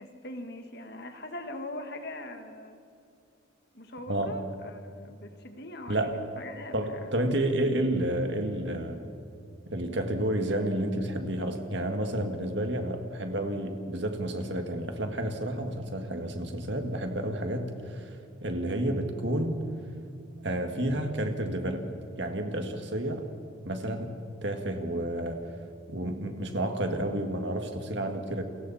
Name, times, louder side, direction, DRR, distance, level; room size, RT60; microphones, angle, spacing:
voice 1, 0.0-2.8 3.7-7.1, left 1 dB, 50° left, 5 dB, 1.8 m, -41 dB
voice 2, 5.9-6.2 6.7-9.0 9.7-18.2 18.4-19.7 20.4-23.3 23.6-25.4 25.9-28.4, right 1 dB, 60° right, 5 dB, 2.0 m, -30 dB
29.5 x 22.5 x 4.3 m, 2.4 s
head